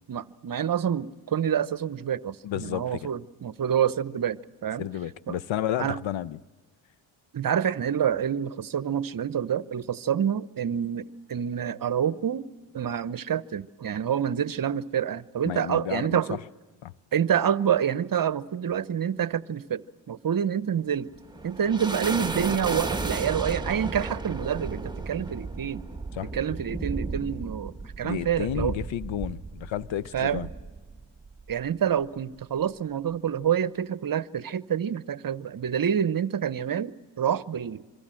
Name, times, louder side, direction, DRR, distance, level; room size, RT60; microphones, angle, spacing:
voice 1, 0.1-4.9 5.3-5.4 5.8-6.0 7.3-12.5 12.7-16.4 17.1-21.1 21.4-25.8 26.3-28.8 30.1-30.5 31.5-37.8, right 8 dB, 45° right, 0.9 m, -27 dB
voice 2, 2.4-3.1 4.8-6.4 15.4-16.4 16.8-16.9 26.1-26.3 28.0-30.5, left 11 dB, 65° left, 0.7 m, -32 dB
sound 1, 20.9-31.7, right 3 dB, 10° right, 1.3 m, -34 dB
26.5 x 23.5 x 7.7 m
cardioid pair, 70°, 49 cm